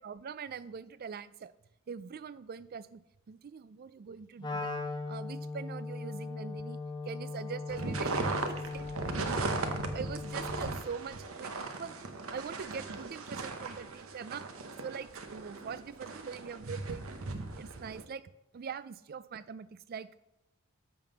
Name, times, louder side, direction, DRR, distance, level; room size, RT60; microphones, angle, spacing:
voice 1, 0.0-1.5 1.9-4.7 5.1-6.8 7.0-9.3 9.9-12.0 12.3-14.5 14.8-17.1 17.5-20.1, right 6 dB, 45° right, 15 dB, 0.4 m, -43 dB
Wind instrument woodwind instrument, 4.4-10.8, left 3 dB, 20° left, 0.8 m, -39 dB
sound 1, 7.7-18.0, right 3 dB, 70° right, 0.9 m, -37 dB
10.5 x 3.7 x 6.9 m, 0.91 s
head